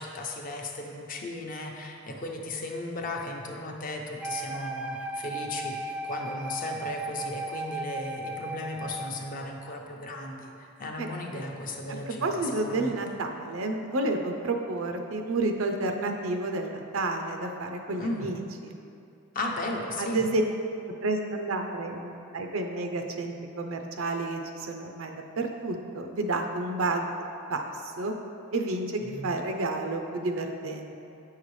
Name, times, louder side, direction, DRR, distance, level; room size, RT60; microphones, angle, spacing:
voice 1, 0.0-13.0 18.0-18.3 19.3-20.2 29.0-29.3, left 2 dB, 45° left, 1 dB, 0.7 m, -36 dB
Wind instrument woodwind instrument, 4.2-9.2, right 2 dB, 5° right, 0.3 m, -36 dB
voice 2, 12.2-18.8 20.0-20.4 21.0-27.1 27.5-28.1 28.5-31.0, right 2 dB, 90° right, 4 dB, 0.6 m, -30 dB
8.7 x 5.7 x 3.2 m, 2.6 s
head